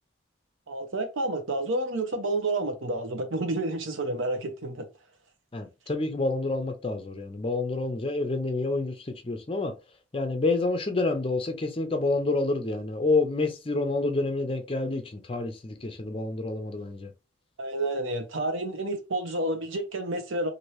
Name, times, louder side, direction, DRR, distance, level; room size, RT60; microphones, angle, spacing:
voice 1, 0.7-4.9 17.6-20.5, right 2 dB, 90° right, 0.8 m, -30 dB
voice 2, 5.5-9.7 10.1-17.1, left 3 dB, 30° left, 0.5 m, -28 dB
2.8 x 2.6 x 3.1 m
head